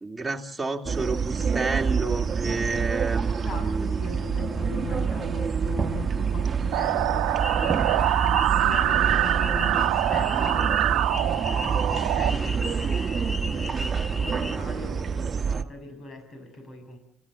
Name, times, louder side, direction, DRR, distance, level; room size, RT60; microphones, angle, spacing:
voice 1, 0.0-4.0, right 3 dB, 10° right, -1 dB, 2.8 m, -30 dB
sound 1, 0.9-15.6, right 6 dB, 40° right, 1.3 m, -27 dB
voice 2, 3.4-13.9 14.2-17.0, left 3 dB, 50° left, 5 dB, 7.0 m, -39 dB
sound 2, 6.7-12.3, right 14 dB, 80° right, 0.9 m, -24 dB
sound 3, 7.4-14.6, left 2 dB, 20° left, 1.2 m, -37 dB
28.5 x 15.0 x 7.7 m, 0.88 s
supercardioid pair, 70°, 0 cm